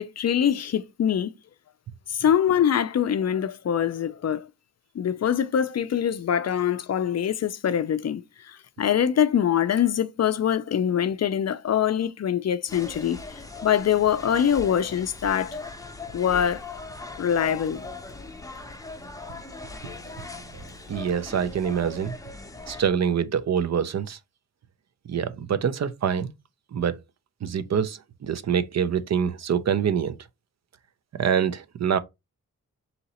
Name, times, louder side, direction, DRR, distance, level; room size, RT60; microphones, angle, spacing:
voice 1, 0.0-1.3 2.1-4.5 5.0-13.2 13.6-15.6 16.1-16.6 17.2-17.9, left 9 dB, 55° left, 0.4 m, -24 dB
sound 1, 12.7-22.9, left 3 dB, 10° left, 0.6 m, -40 dB
voice 2, 20.5-22.1 22.7-24.2 25.1-26.3 26.7-27.0 27.4-30.1 31.2-32.0, right 8 dB, 55° right, 0.5 m, -25 dB
3.9 x 2.8 x 4.1 m
wide cardioid pair, 120°, 31 cm